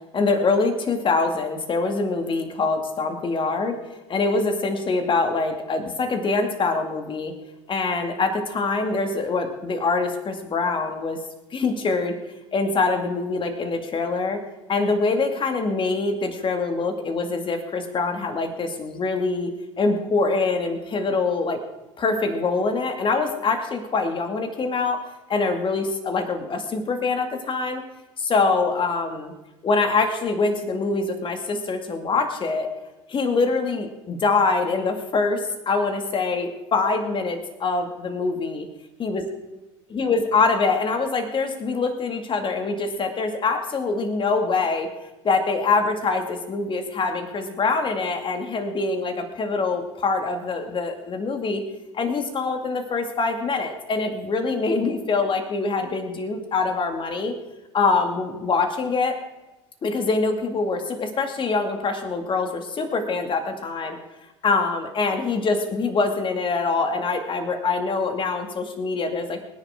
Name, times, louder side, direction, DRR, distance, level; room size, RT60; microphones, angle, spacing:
voice 1, 0.1-3.8 4.1-7.3 7.7-11.2 11.5-12.1 12.5-14.4 14.7-19.5 19.8-21.6 22.0-27.8 28.2-29.3 29.6-32.7 33.1-38.7 39.0-39.2 39.9-44.9 45.2-51.6 51.9-57.4 57.7-59.2 59.8-64.0 64.4-69.5, left 3 dB, 35° left, 5 dB, 2.3 m, -24 dB
23.5 x 10.5 x 3.8 m, 1.0 s
figure-of-eight pair, 65°, 15 cm